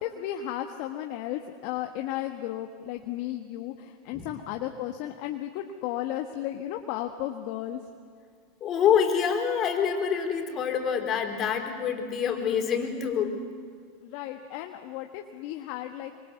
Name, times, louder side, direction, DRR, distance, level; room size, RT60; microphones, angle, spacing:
voice 1, 0.0-7.8 14.0-16.1, left 12 dB, 55° left, 5 dB, 1.4 m, -34 dB
voice 2, 8.6-13.4, left 7 dB, 40° left, 4 dB, 4.2 m, -26 dB
25.5 x 24.5 x 8.3 m, 2.2 s
hypercardioid pair, 90°, 0 cm